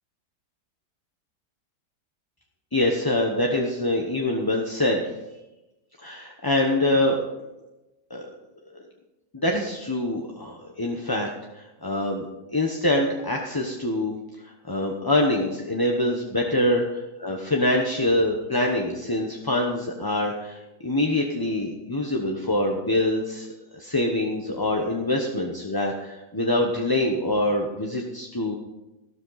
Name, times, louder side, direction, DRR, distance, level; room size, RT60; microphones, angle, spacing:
voice 1, 2.7-5.0 6.0-7.2 8.1-8.3 8.7-8.8 9.3-11.3 11.5-14.2 14.4-23.5 23.7-28.6, left 1 dB, 15° left, 0 dB, 0.8 m, -25 dB
13.0 x 12.5 x 4.1 m, 0.99 s
omnidirectional pair, 1.8 m